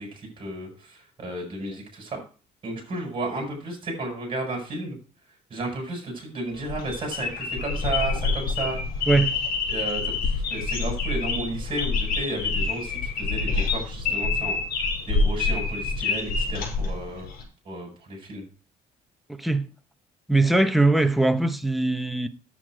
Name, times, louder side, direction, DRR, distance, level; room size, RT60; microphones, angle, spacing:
voice 1, 0.0-2.2 2.6-5.0 5.5-9.1 9.7-17.3 17.6-18.5, right 2 dB, 30° right, 7.4 m, -33 dB
sound 1, 6.5-17.4, left 4 dB, 60° left, 5.5 m, -27 dB
voice 2, 9.1-9.4 19.4-19.7 20.3-22.3, right 2 dB, ahead, 1.1 m, -21 dB
10.0 x 8.1 x 5.0 m
cardioid pair, 110°, 17 cm